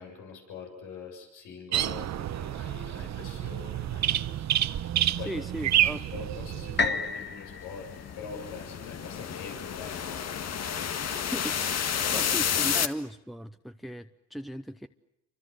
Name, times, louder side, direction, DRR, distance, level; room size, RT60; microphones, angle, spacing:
voice 1, 0.0-4.3 5.2-5.3 5.7-10.4 11.9-12.7, left 5 dB, 90° left, 7.4 m, -43 dB
sound 1, 1.7-6.9, right 11 dB, 65° right, 1.1 m, -29 dB
voice 2, 5.2-6.0 11.3-14.9, right 1 dB, ahead, 0.9 m, -37 dB
sound 2, 6.8-10.7 11.3-11.4, left 4 dB, 35° left, 1.9 m, -34 dB
sound 3, 6.9-12.9, left 8 dB, 60° left, 1.8 m, -31 dB
29.0 x 25.5 x 7.9 m
cardioid pair, 90°, 30 cm